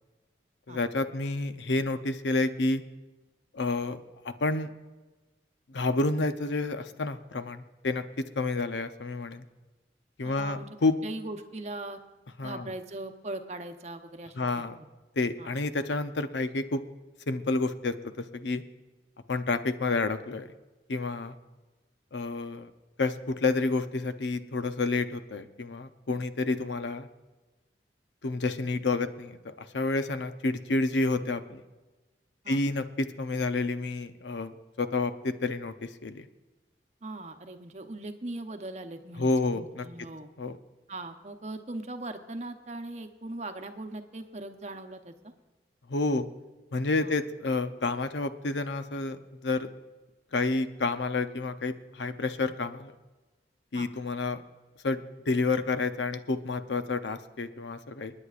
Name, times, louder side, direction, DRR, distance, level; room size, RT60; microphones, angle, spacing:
voice 1, 0.7-2.8 3.5-4.7 5.7-8.0 8.4-9.4 10.2-10.9 12.4-12.7 14.4-14.8 15.2-16.8 17.3-18.6 19.3-20.5 20.9-21.4 22.1-22.7 23.0-27.1 28.2-31.6 32.5-36.3 39.2-39.8 40.4-40.6 45.9-46.3 46.7-49.7 50.3-52.9 53.7-54.4 54.8-58.1, left 3 dB, 90° left, 10 dB, 0.7 m, -29 dB
voice 2, 10.2-10.7 11.0-12.0 12.4-14.4 15.4-15.5 32.4-32.6 37.0-40.3 40.9-45.3 47.0-47.2 53.7-53.9, right 2 dB, 40° right, 7 dB, 0.9 m, -40 dB
29.0 x 9.7 x 2.5 m, 1.2 s
head